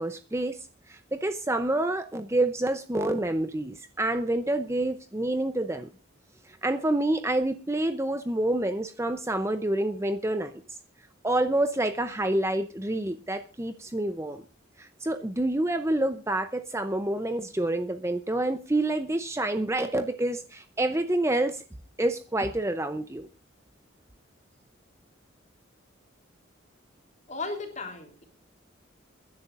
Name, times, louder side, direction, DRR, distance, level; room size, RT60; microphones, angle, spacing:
voice 1, 0.0-5.9 6.4-10.8 11.2-14.4 14.8-21.6 22.0-23.3, right 1 dB, 15° right, 9 dB, 0.6 m, -28 dB
voice 2, 27.3-28.3, left 3 dB, 35° left, 3 dB, 3.4 m, -35 dB
28.5 x 11.0 x 2.5 m, 0.33 s
head